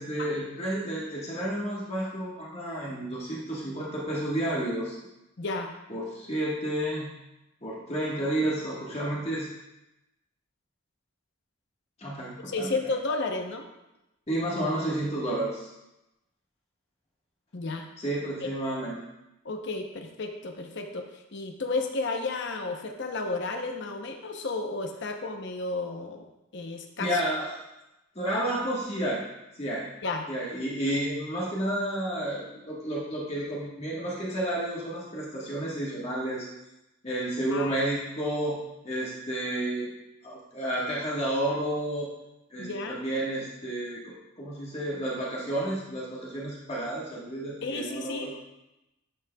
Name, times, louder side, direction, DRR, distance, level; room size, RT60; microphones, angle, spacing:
voice 1, 0.0-4.9 5.9-7.1 7.6-9.5 12.0-12.7 14.3-15.7 18.0-19.0 27.0-27.6 28.1-29.2 29.6-29.8 30.3-36.5 37.0-39.9 40.2-42.1 42.5-48.4, right 1 dB, 30° left, -5 dB, 1.4 m, -31 dB
voice 2, 5.4-5.7 12.4-13.7 17.5-17.9 19.4-27.2 30.0-30.3 37.5-37.7 42.6-43.0 47.6-48.3, left 3 dB, 55° left, 4 dB, 0.8 m, -32 dB
10.5 x 6.2 x 2.3 m, 0.93 s
head